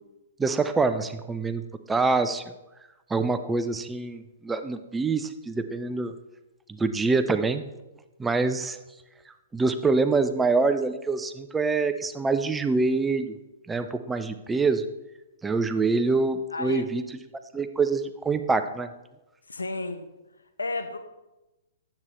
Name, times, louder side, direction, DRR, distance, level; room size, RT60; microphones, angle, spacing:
voice 1, 0.4-1.6 1.9-2.4 3.1-6.1 6.7-7.7 8.2-8.8 9.5-13.3 13.7-14.9 15.4-17.0 17.5-18.9, right 3 dB, 10° right, 10 dB, 0.4 m, -25 dB
voice 2, 16.5-16.9 19.5-20.0 20.6-21.0, left 2 dB, 75° left, 7 dB, 0.8 m, -31 dB
9.5 x 7.6 x 3.1 m, 1.0 s
figure-of-eight pair, 115°, 0 cm